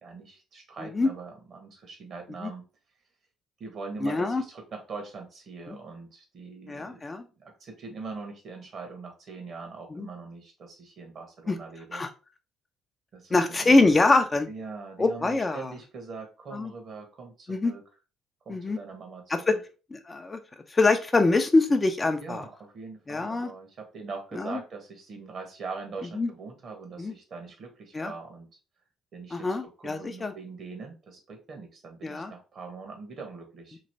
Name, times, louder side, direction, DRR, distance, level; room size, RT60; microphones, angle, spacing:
voice 1, 0.0-2.6 3.6-7.0 7.4-12.0 13.1-13.9 14.5-17.8 18.4-19.6 22.2-28.5 29.1-33.8, right 4 dB, 50° right, 3 dB, 1.2 m, -42 dB
voice 2, 4.0-4.4 5.7-5.8 6.7-7.2 9.9-10.1 11.5-11.6 11.9-12.1 13.3-14.5 15.0-15.7 16.5-16.7 17.5-17.7 18.5-18.8 19.5-19.6 19.9-20.4 20.7-22.4 23.1-23.5 24.4-24.6 26.2-26.3 27.0-27.1 27.9-28.1 29.3-30.3 32.0-32.3, left 3 dB, 25° left, 7 dB, 0.5 m, -24 dB
3.0 x 2.8 x 2.7 m, 0.33 s
hypercardioid pair, 50°, 0 cm